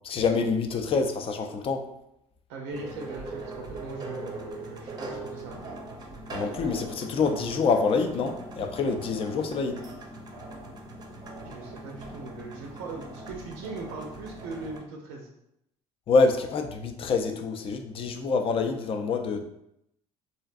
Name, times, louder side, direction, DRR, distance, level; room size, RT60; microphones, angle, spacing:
voice 1, 0.0-1.8 6.3-9.8 16.1-19.4, left 4 dB, 40° left, 5 dB, 0.4 m, -26 dB
voice 2, 2.5-5.6 11.4-15.3, right 3 dB, 85° right, 0 dB, 0.4 m, -40 dB
sound 1, 2.7-14.8, right 2 dB, 30° right, 0.5 m, -41 dB
2.5 x 2.2 x 2.5 m, 0.80 s
supercardioid pair, 75°, 14 cm